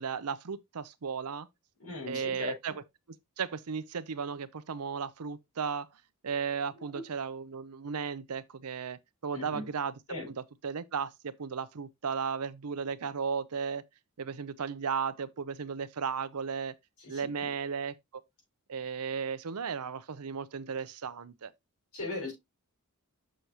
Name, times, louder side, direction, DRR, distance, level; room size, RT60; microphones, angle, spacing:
voice 1, 0.0-1.5 2.1-2.7 3.4-5.9 6.2-9.9 10.3-13.8 14.2-16.7 17.1-18.0 18.7-21.5, right 6 dB, 85° right, 0.6 m, -35 dB
voice 2, 1.8-2.8 6.8-7.0 9.3-9.7 10.1-10.3 17.0-17.5 21.9-22.3, left 2 dB, 90° left, 5.2 m, -39 dB
6.8 x 6.4 x 2.9 m
head